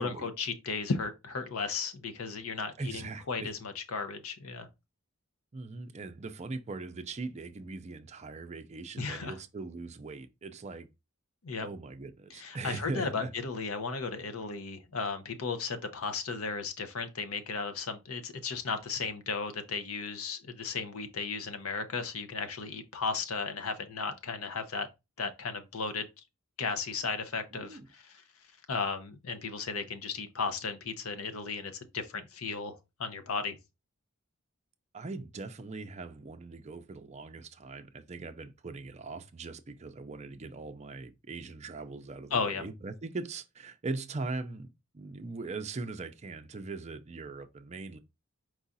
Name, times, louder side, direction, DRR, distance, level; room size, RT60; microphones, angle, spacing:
voice 1, 0.0-4.7 9.0-9.3 11.4-11.7 12.3-24.9 25.2-26.1 26.6-28.2 28.7-33.6 42.3-42.6, left 4 dB, 90° left, 0.7 m, -35 dB
voice 2, 2.8-3.5 5.5-10.9 11.6-13.3 27.5-27.9 34.9-48.0, right 3 dB, 30° right, 0.5 m, -40 dB
4.7 x 2.4 x 4.0 m
head